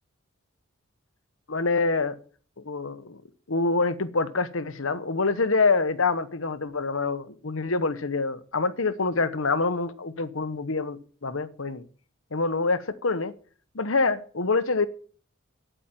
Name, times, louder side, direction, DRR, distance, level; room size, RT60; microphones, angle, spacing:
voice 1, 1.5-2.2 2.6-3.2 3.5-11.9 12.3-13.3 13.7-14.9, left 3 dB, 80° left, 1.1 m, -26 dB
9.2 x 8.6 x 9.0 m
head